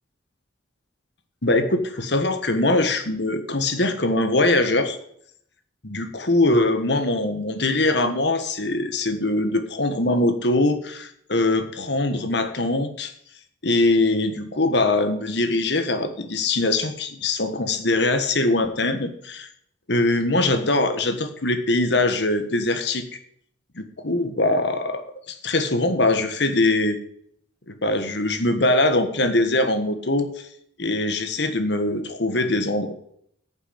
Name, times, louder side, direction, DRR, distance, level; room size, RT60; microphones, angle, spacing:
voice 1, 1.4-5.0 5.8-13.1 13.6-19.5 19.9-23.1 23.7-27.0 27.7-30.5 30.8-32.9, left 2 dB, 60° left, 8 dB, 1.6 m, -22 dB
9.7 x 7.1 x 8.6 m, 0.67 s
head